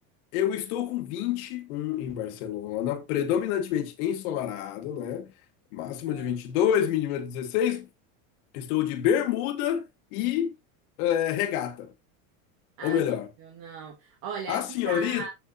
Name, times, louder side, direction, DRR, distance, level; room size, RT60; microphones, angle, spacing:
voice 1, 0.3-5.3 5.7-7.9 8.5-9.8 10.1-10.6 11.0-11.9 12.8-13.3 14.5-15.3, left 10 dB, 75° left, 2.0 m, -27 dB
voice 2, 6.0-6.4 12.8-13.0 13.4-15.3, right 6 dB, 50° right, 2.6 m, -38 dB
14.5 x 6.1 x 2.6 m
supercardioid pair, 130°, 44 cm